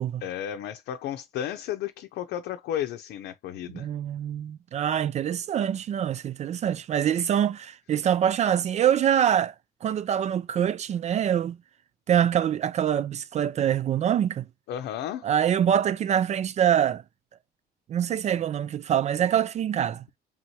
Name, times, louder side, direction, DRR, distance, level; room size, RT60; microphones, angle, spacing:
voice 1, 0.2-3.9 14.7-15.3, left 10 dB, 75° left, 0.6 m, -33 dB
voice 2, 3.7-9.5 9.8-11.6 12.1-14.5 15.2-17.0 17.9-20.0, right 9 dB, 40° right, 0.4 m, -25 dB
3.5 x 2.7 x 4.4 m
cardioid pair, 110°, 17 cm